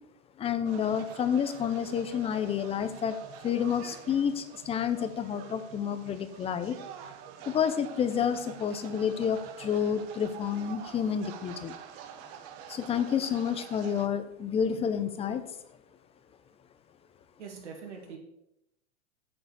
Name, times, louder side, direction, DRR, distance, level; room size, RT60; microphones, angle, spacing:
voice 1, 0.4-3.2 3.4-6.8 7.5-11.8 12.7-15.4, left 8 dB, 15° left, 10 dB, 0.6 m, -29 dB
sound 1, 0.6-14.1, right 9 dB, 45° right, 0.9 m, -47 dB
voice 2, 17.4-18.2, right 6 dB, 90° right, 0 dB, 2.0 m, -43 dB
8.3 x 5.0 x 6.6 m, 0.83 s
hypercardioid pair, 130°, 34 cm